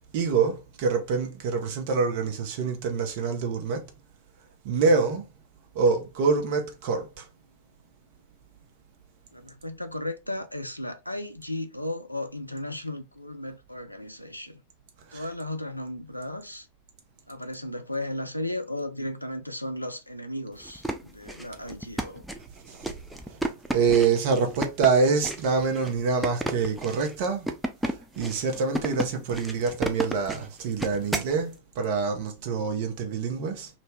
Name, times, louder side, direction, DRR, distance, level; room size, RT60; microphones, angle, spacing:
voice 1, 0.1-3.8 4.6-5.2 5.7-7.2 15.1-15.3 22.6-22.9 23.3-27.5 28.2-33.7, right 5 dB, 50° right, 0.7 m, -26 dB
voice 2, 9.3-14.6 15.1-16.7 17.3-22.2, left 1 dB, 90° left, 0.4 m, -35 dB
sound 1, 20.6-31.4, right 1 dB, 5° right, 0.4 m, -33 dB
2.6 x 2.1 x 3.3 m
figure-of-eight pair, 90°, 0 cm